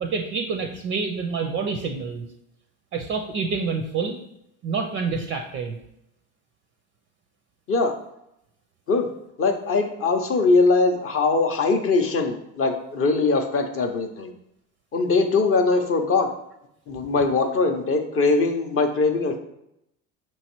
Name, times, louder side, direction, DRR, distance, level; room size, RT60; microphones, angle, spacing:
voice 1, 0.0-2.3 2.9-4.2 4.6-5.8, right 5 dB, 30° right, 5 dB, 0.4 m, -27 dB
voice 2, 9.4-14.3 14.9-16.3 16.9-19.4, left 3 dB, 35° left, 5 dB, 0.5 m, -21 dB
5.2 x 3.1 x 2.9 m, 0.80 s
supercardioid pair, 95°, 40 cm